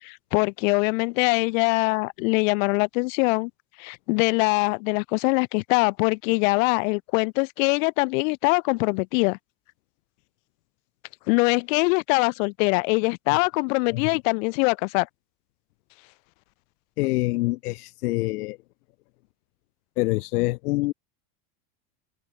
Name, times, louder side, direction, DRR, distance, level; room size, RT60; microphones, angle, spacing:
voice 1, 0.0-3.5 3.8-9.4 11.3-15.1, left 29 dB, 60° left, 2.2 m, -23 dB
voice 2, 17.0-18.6 20.0-20.9, left 21 dB, 85° left, 1.2 m, -25 dB
supercardioid pair, 165°, 44 cm